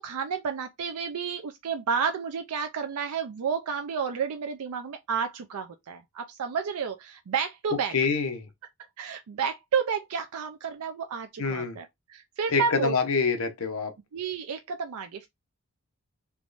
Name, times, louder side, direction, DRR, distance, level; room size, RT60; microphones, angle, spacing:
voice 1, 0.0-7.9 9.0-13.0 14.1-15.3, right 6 dB, 85° right, 0.4 m, -31 dB
voice 2, 7.9-8.5 11.4-11.8 12.5-13.9, left 4 dB, 70° left, 0.8 m, -26 dB
3.5 x 3.0 x 2.4 m
head